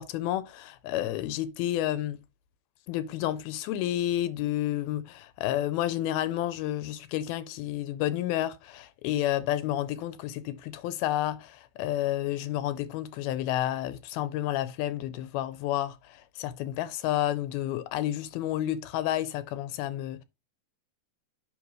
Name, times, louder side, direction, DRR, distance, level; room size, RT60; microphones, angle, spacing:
voice 1, 0.0-2.2 2.9-20.2, left 13 dB, 80° left, 2.5 m, -30 dB
8.7 x 3.3 x 6.2 m
omnidirectional pair, 4.4 m